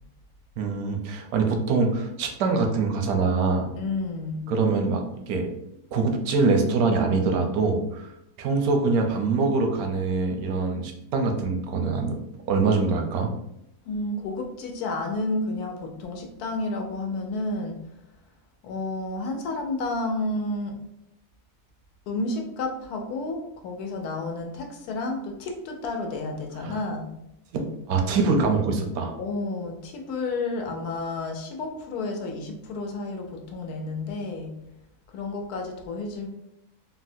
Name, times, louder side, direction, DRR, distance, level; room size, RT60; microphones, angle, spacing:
voice 1, 0.6-3.7 4.5-5.5 5.9-8.1 8.4-12.2 12.5-13.3 26.6-26.8 27.5-29.1, right 4 dB, 80° right, 4 dB, 1.0 m, -24 dB
voice 2, 3.7-4.4 13.9-17.8 18.6-20.8 22.1-27.1 29.2-34.5 35.1-36.3, left 2 dB, 85° left, 2 dB, 1.1 m, -31 dB
3.9 x 2.0 x 2.6 m, 0.81 s
omnidirectional pair, 1.6 m